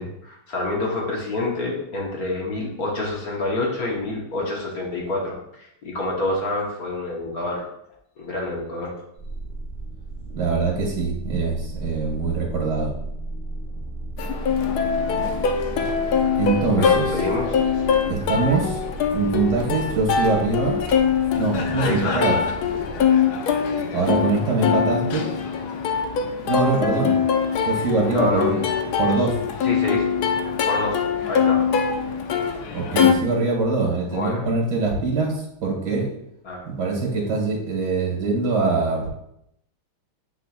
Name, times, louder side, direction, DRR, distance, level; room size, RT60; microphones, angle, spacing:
voice 1, 0.0-7.7 8.2-8.9 16.7-17.6 21.8-22.4 23.9-24.4 28.1-28.5 29.6-30.1 30.7-31.6 34.1-34.5 36.4-36.6, left 2 dB, 50° left, -2 dB, 1.6 m, -27 dB
sound 1, 9.2-23.0, right 2 dB, 30° left, 1.7 m, -35 dB
voice 2, 10.3-12.9 16.4-17.1 18.1-18.8 19.1-20.8 21.4-22.4 23.9-25.3 26.5-27.1 27.7-28.6 29.0-29.4 32.7-36.1 36.7-39.1, right 3 dB, 55° right, -1 dB, 2.3 m, -23 dB
Plucked string instrument, 14.2-33.1, left 6 dB, 70° left, 1.0 m, -23 dB
9.2 x 4.5 x 2.4 m, 0.76 s
omnidirectional pair, 2.2 m